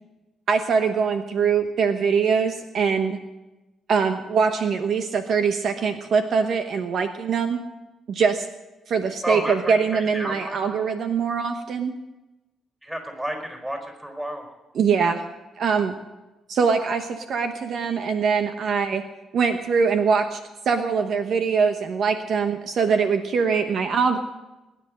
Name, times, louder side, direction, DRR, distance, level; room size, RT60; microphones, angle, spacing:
voice 1, 0.5-3.2 3.9-7.6 8.1-8.5 8.9-11.9 14.7-15.2 15.6-15.9 16.5-19.0 19.3-20.4 20.6-24.2, right 5 dB, 60° right, 7 dB, 1.1 m, -22 dB
voice 2, 9.2-10.7 12.8-14.5, equal, 10° right, 4 dB, 4.9 m, -31 dB
21.0 x 10.5 x 6.5 m, 1.1 s
cardioid pair, 90°, 0 cm